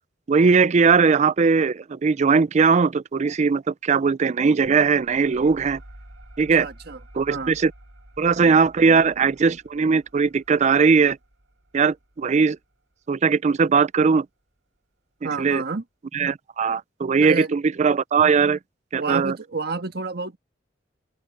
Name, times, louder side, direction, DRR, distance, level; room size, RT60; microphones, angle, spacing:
voice 1, 0.3-5.8 6.4-6.7 7.2-7.7 8.2-11.2 11.7-12.6 13.1-14.3 15.4-15.6 16.1-18.6 18.9-19.3, right 5 dB, 40° right, 0.4 m, -19 dB
sound 1, 4.6-13.8, right 1 dB, 85° right, 3.7 m, -50 dB
voice 2, 6.6-7.0 7.3-7.5 15.2-15.8 17.2-17.5 18.9-20.4, right 4 dB, 60° right, 1.5 m, -29 dB
head